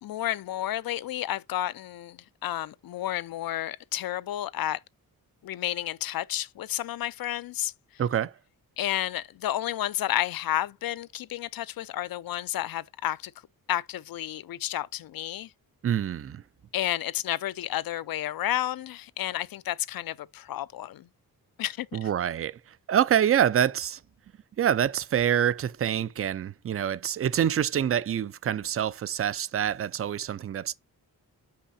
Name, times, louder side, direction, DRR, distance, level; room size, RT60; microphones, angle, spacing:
voice 1, 0.0-4.8 5.4-7.7 8.8-13.3 13.7-15.5 16.7-21.1 21.6-22.1, left 13 dB, 70° left, 0.5 m, -31 dB
voice 2, 8.0-8.3 15.8-16.4 21.9-22.6 22.9-24.0 24.6-30.7, right 9 dB, 40° right, 0.4 m, -26 dB
5.8 x 5.5 x 4.1 m
wide cardioid pair, 110°, 37 cm